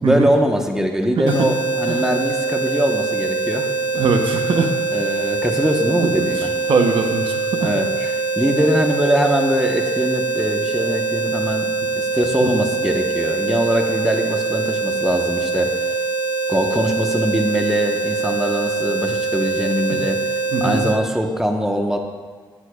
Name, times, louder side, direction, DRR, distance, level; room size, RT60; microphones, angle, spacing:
voice 1, 0.0-3.7 4.9-6.5 7.6-8.1 8.4-15.7 16.5-20.2 20.6-22.0, equal, 5° right, 3 dB, 1.1 m, -21 dB
voice 2, 1.2-1.5 1.8-2.1 3.9-4.7 6.0-7.7 12.4-12.5 19.9-20.0 20.5-20.8, right 4 dB, 70° right, 5 dB, 0.9 m, -21 dB
sound 1, 1.3-21.0, right 4 dB, 60° left, 1.9 m, -23 dB
11.0 x 9.6 x 2.4 m, 1.5 s
cardioid pair, 70°, 9 cm